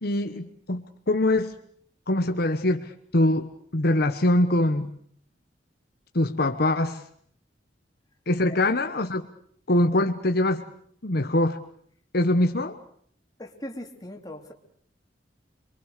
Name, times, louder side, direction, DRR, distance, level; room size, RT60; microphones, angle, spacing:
voice 1, 0.0-1.6 2.1-4.9 6.1-7.0 8.3-9.3 9.7-10.7 11.0-11.6 12.1-12.8, left 1 dB, 60° left, 7 dB, 1.2 m, -23 dB
voice 2, 13.4-14.5, left 1 dB, 20° left, 2 dB, 3.1 m, -39 dB
26.5 x 23.5 x 6.7 m, 0.62 s
head